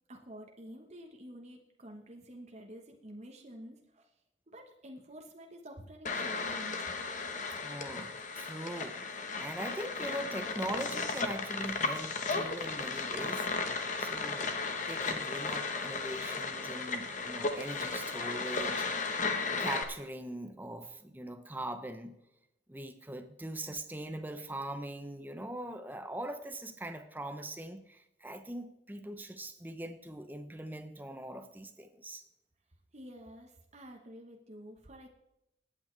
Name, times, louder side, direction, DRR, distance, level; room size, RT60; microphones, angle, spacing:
voice 1, 0.1-4.1 4.5-7.0 32.9-35.1, right 1 dB, 35° right, 2 dB, 1.1 m, -49 dB
sound 1, 6.1-19.8, left 4 dB, 40° left, 1.1 m, -35 dB
voice 2, 7.6-13.5 14.0-18.9 19.6-22.1 22.7-32.2, right 1 dB, 10° right, 9 dB, 0.7 m, -41 dB
20.0 x 8.8 x 3.3 m, 0.85 s
head